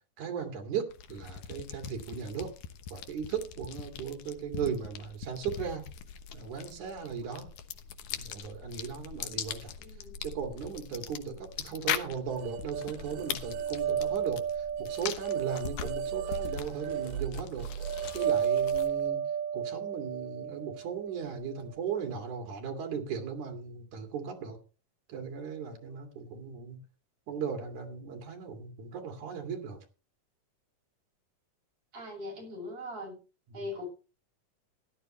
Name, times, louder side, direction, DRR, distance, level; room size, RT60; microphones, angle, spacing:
voice 1, 0.2-2.5 2.9-5.8 6.3-7.5 8.1-9.7 10.2-14.4 14.8-17.7 18.1-19.2 19.5-24.6 25.1-26.8 27.3-29.8, right 6 dB, 70° right, 4 dB, 3.8 m, -37 dB
sound 1, 0.9-19.1, left 8 dB, 85° left, 2.7 m, -41 dB
voice 2, 9.8-10.3 31.9-33.2 33.5-33.9, left 2 dB, 45° right, -2 dB, 7.8 m, -40 dB
sound 2, 12.4-21.6, right 8 dB, 90° right, 2.3 m, -33 dB
17.0 x 11.5 x 3.2 m, 0.33 s
omnidirectional pair, 3.6 m